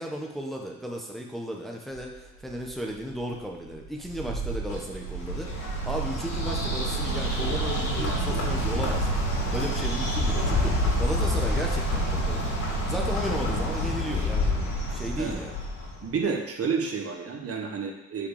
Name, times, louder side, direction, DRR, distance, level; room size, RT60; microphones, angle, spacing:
voice 1, 0.0-12.6 12.9-15.6, equal, ahead, 0 dB, 1.1 m, -35 dB
Engine starting, 1.9-16.0, right 10 dB, 90° right, 1.7 m, -35 dB
Bird, 4.7-16.1, left 2 dB, 75° left, 3.2 m, -28 dB
voice 2, 16.0-18.3, right 5 dB, 50° right, 1 dB, 1.4 m, -30 dB
6.0 x 4.9 x 6.6 m, 0.92 s
cardioid pair, 90°, 30 cm